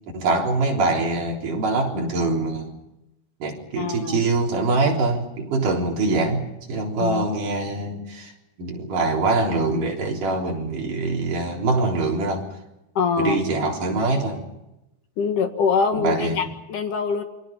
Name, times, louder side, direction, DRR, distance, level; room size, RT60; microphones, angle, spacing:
voice 1, 0.1-2.7 3.4-8.3 8.6-12.4 13.2-14.5 15.9-16.4, right 3 dB, 50° right, 0 dB, 5.0 m, -24 dB
voice 2, 3.8-4.3 7.0-7.3 13.0-13.4 15.2-17.2, left 5 dB, 55° left, 6 dB, 2.8 m, -24 dB
28.5 x 24.0 x 5.4 m, 0.92 s
omnidirectional pair, 5.1 m